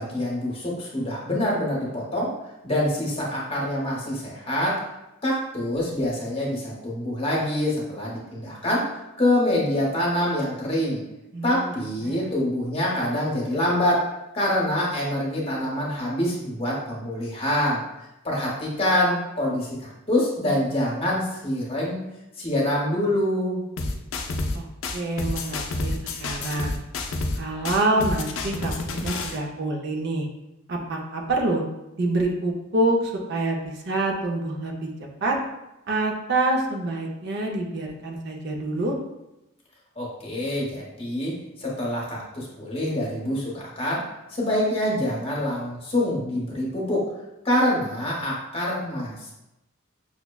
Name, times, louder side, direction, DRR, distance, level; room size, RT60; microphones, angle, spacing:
voice 1, 0.0-2.3 2.6-4.8 5.2-8.9 9.2-11.0 11.4-14.1 14.3-17.8 18.2-22.0 22.4-23.6 40.0-47.1 47.4-49.3, left 1 dB, 30° left, -4 dB, 0.8 m, -25 dB
voice 2, 11.3-11.7 12.0-12.3 24.5-24.6 24.9-26.8 27.4-30.3 30.7-31.6 32.0-34.9 35.2-35.4 35.9-39.0, right 2 dB, 55° right, 1 dB, 0.5 m, -26 dB
sound 1, 23.8-24.6 24.8-27.4 27.6-29.4, left 2 dB, 75° left, 0.4 m, -29 dB
5.8 x 2.1 x 2.2 m, 0.92 s
head